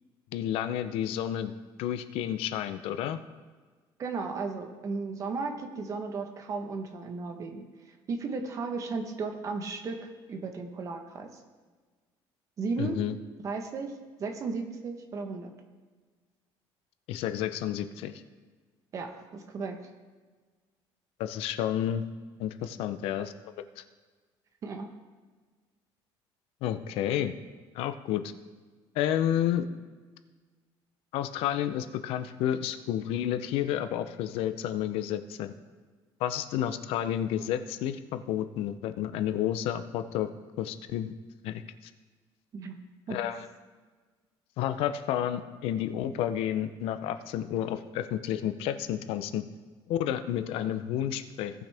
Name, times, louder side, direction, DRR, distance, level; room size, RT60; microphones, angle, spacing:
voice 1, 0.3-1.5 1.8-3.2 12.8-13.1 17.1-18.1 21.2-22.0 22.4-23.3 23.8-23.9 26.6-27.4 27.7-28.2 28.9-29.6 31.1-35.5 36.2-40.3 40.6-41.1 41.4-41.9 43.1-43.5 44.6-49.4 49.9-51.5, left 11 dB, 75° left, 10 dB, 0.6 m, -30 dB
voice 2, 4.0-7.6 8.1-11.3 12.6-13.0 13.4-13.9 14.2-15.5 18.9-19.8 24.6-24.9 42.5-42.7 43.1-43.2, right 4 dB, 35° right, 4 dB, 1.0 m, -35 dB
17.5 x 6.3 x 3.4 m, 1.4 s
cardioid pair, 175°, 10 cm